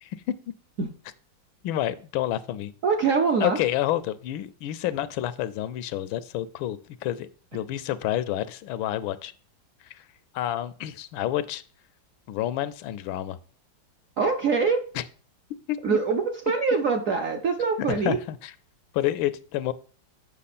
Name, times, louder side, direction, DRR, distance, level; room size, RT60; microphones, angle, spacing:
voice 1, 0.0-0.4 1.6-2.7 3.4-9.3 9.9-10.0 10.3-11.6 12.3-13.4 14.9-15.0 15.7-16.0 17.9-18.5 18.9-19.7, left 13 dB, 90° left, 1.4 m, -29 dB
voice 2, 2.8-3.6 14.2-14.8 15.8-18.2, right 5 dB, 65° right, 0.8 m, -24 dB
7.4 x 5.8 x 4.2 m
omnidirectional pair, 2.1 m